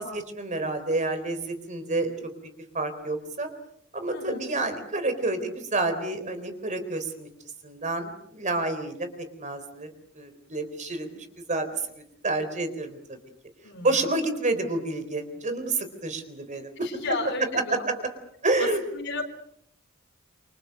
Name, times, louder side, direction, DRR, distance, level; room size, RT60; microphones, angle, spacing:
voice 1, 0.0-2.1 2.7-3.5 3.9-7.3 7.6-9.1 9.4-11.7 11.9-13.2 13.8-16.7 17.5-17.9 18.4-18.8, right 2 dB, 35° right, 9 dB, 3.9 m, -29 dB
voice 2, 4.1-4.4 13.6-13.9 16.8-17.8 18.6-18.7 18.9-19.2, left 3 dB, 60° left, 1 dB, 4.2 m, -32 dB
28.0 x 26.0 x 6.5 m, 0.72 s
head